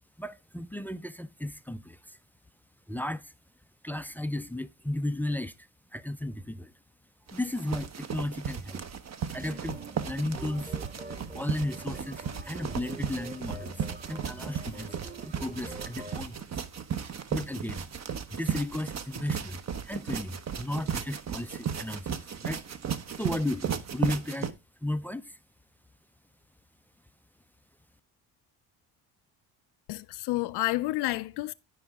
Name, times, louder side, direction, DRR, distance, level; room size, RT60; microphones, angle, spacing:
voice 1, 0.2-2.2 2.9-3.3 3.8-6.7 7.3-8.8 9.3-9.8 10.1-10.7 11.3-14.9 15.2-16.4 17.3-17.9 18.3-22.7 23.2-24.5 24.8-25.4, left 1 dB, 5° left, 0.4 m, -34 dB
sound 1, 7.3-24.5, right 8 dB, 40° right, 0.9 m, -35 dB
sound 2, 9.3-16.3, right 2 dB, 20° right, 1.2 m, -45 dB
voice 2, 29.9-31.5, left 18 dB, 65° left, 0.5 m, -30 dB
12.5 x 4.9 x 3.5 m
supercardioid pair, 75°, 43 cm